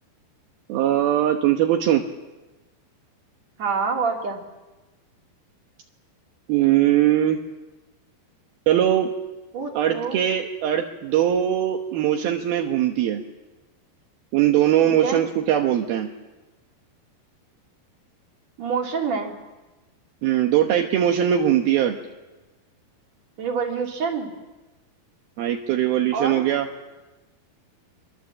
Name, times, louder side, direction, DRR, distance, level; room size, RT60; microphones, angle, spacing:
voice 1, 0.7-2.0 6.5-7.4 8.7-9.1 9.7-13.2 14.3-16.1 20.2-22.0 25.4-26.7, right 11 dB, 75° right, 3 dB, 3.0 m, -20 dB
voice 2, 3.6-4.4 9.5-10.2 14.8-15.2 18.6-19.4 23.4-24.3 26.1-26.4, right 5 dB, 45° right, 1 dB, 4.0 m, -26 dB
25.5 x 24.0 x 7.5 m, 1.1 s
omnidirectional pair, 4.5 m